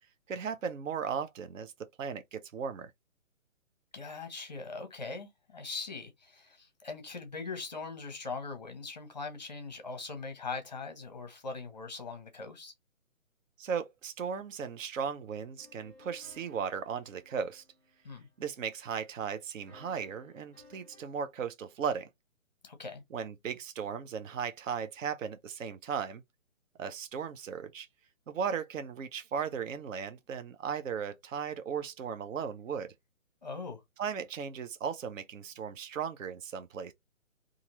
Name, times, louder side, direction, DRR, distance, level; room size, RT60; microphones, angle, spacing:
voice 1, 0.3-1.7 2.0-2.9 13.6-17.6 18.4-22.1 23.1-26.2 26.8-27.9 28.3-32.9 34.0-36.9, right 7 dB, 65° right, 0.6 m, -36 dB
voice 2, 3.9-12.7 18.0-18.3 22.6-23.0 33.4-33.8, left 4 dB, 30° left, 0.6 m, -41 dB
sound 1, 15.6-18.8 19.7-21.0, left 2 dB, 15° right, 0.9 m, -59 dB
2.8 x 2.5 x 2.9 m
hypercardioid pair, 170°, 41 cm